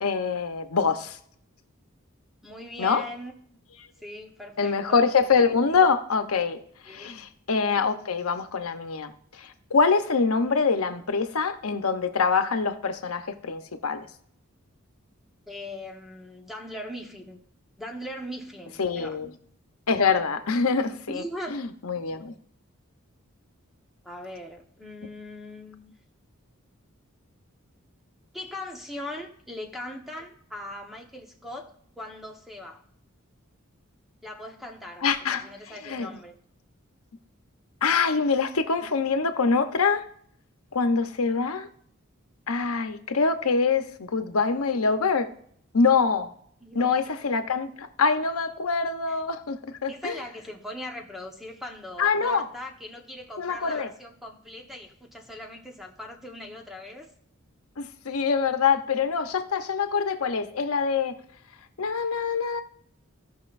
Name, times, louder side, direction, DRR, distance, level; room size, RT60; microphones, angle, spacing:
voice 1, 0.0-1.2 2.8-3.0 4.6-6.6 6.9-9.1 9.4-14.0 18.8-19.3 19.9-21.2 21.5-22.3 35.0-35.5 35.8-36.1 37.8-40.1 40.7-41.7 42.5-45.3 45.7-46.3 46.7-50.2 52.0-52.4 53.4-53.9 57.8-61.1 61.8-62.6, left 5 dB, 85° left, 0.9 m, -24 dB
voice 2, 2.4-3.3 4.0-5.0 6.8-7.2 15.5-17.4 17.8-19.2 21.1-21.6 24.0-25.9 28.3-32.8 34.2-35.0 35.3-36.4 46.6-47.0 49.1-49.2 49.9-57.1, left 1 dB, ahead, 1.1 m, -40 dB
16.5 x 5.6 x 2.6 m
head